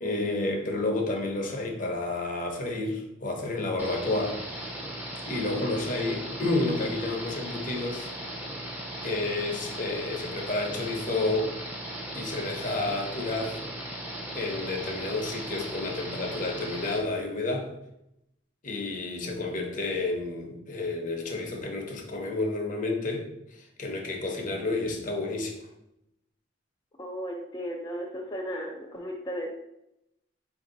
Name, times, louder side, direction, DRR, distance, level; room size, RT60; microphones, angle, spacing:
voice 1, 0.0-4.4 5.2-8.1 9.0-11.5 12.1-13.6 14.3-17.7 18.6-23.3 23.8-25.6, left 2 dB, 45° left, 1 dB, 0.8 m, -30 dB
sound 1, 3.8-17.0, right 1 dB, 10° right, 0.8 m, -37 dB
voice 2, 27.0-29.5, equal, 25° left, -3 dB, 0.4 m, -35 dB
4.7 x 2.7 x 3.8 m, 0.84 s
head